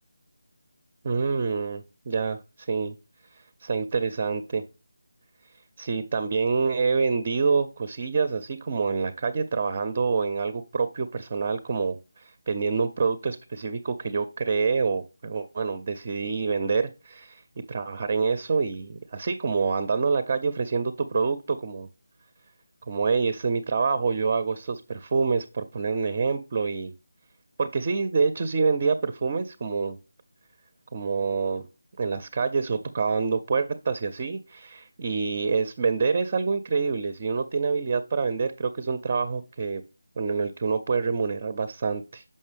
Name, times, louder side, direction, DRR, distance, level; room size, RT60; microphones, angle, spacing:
voice 1, 1.0-2.9 3.6-4.6 5.8-17.4 17.7-21.9 22.9-26.9 27.6-30.0 30.9-31.7 32.0-39.8 40.2-42.2, right 5 dB, 30° right, 13 dB, 0.4 m, -26 dB
6.5 x 5.4 x 3.3 m, 0.29 s
figure-of-eight pair, 160°, 0 cm